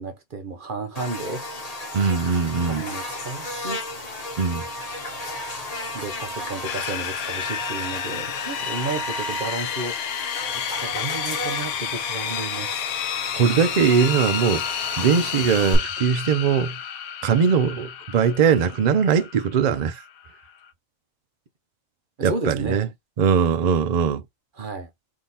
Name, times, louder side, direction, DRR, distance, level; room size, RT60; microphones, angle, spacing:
voice 1, 0.0-1.4 2.6-3.8 5.9-12.9 22.2-22.8 24.5-24.9, right 3 dB, 45° right, 0.8 m, -33 dB
Buzz, 0.9-15.7, left 1 dB, 30° left, 1.0 m, -33 dB
voice 2, 1.9-2.8 4.4-4.6 13.3-14.6 15.0-16.8 17.2-20.0 22.2-22.9 23.2-24.2, right 6 dB, 65° right, 0.4 m, -20 dB
sound 1, 6.6-20.7, left 10 dB, 80° left, 1.0 m, -31 dB
3.7 x 2.9 x 4.0 m
omnidirectional pair, 1.4 m